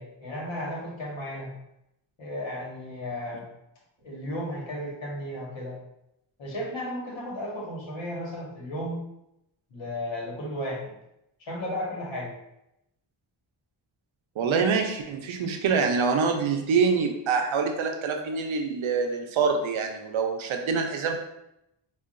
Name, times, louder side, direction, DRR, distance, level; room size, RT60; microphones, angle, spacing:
voice 1, 0.0-1.5 2.2-3.5 4.0-5.8 6.4-9.0 9.7-10.9 11.4-12.3, left 1 dB, 70° left, -3 dB, 1.4 m, -34 dB
voice 2, 14.4-21.2, right 5 dB, 85° right, 3 dB, 0.7 m, -25 dB
4.6 x 2.5 x 2.5 m, 0.84 s
wide cardioid pair, 110°, 46 cm